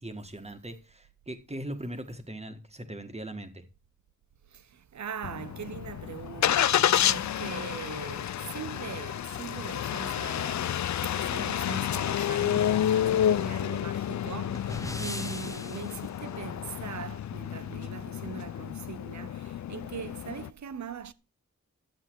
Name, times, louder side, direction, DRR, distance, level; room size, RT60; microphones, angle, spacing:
voice 1, 0.0-3.6, right 1 dB, 20° right, 1.7 m, -40 dB
voice 2, 4.5-21.1, right 8 dB, 70° right, 0.8 m, -41 dB
Engine starting, 5.2-20.5, left 10 dB, 65° left, 0.4 m, -30 dB
sound 1, 13.4-16.1, left 2 dB, 10° left, 0.6 m, -41 dB
10.5 x 7.7 x 4.7 m
cardioid pair, 60°, 30 cm